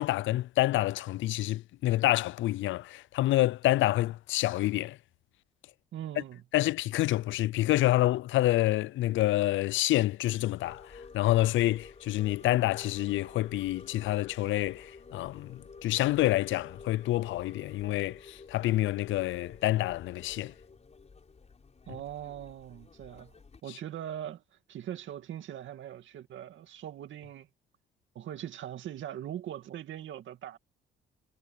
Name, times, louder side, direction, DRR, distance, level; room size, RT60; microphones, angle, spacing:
voice 1, 0.0-5.0 6.5-20.5, left 16 dB, 75° left, 0.4 m, -28 dB
voice 2, 5.9-6.4 21.9-23.3 23.6-24.4 24.7-27.5 28.1-30.6, right 11 dB, 75° right, 2.4 m, -41 dB
sound 1, 10.6-23.6, left 4 dB, 35° left, 5.0 m, -51 dB
cardioid pair, 90°, 20 cm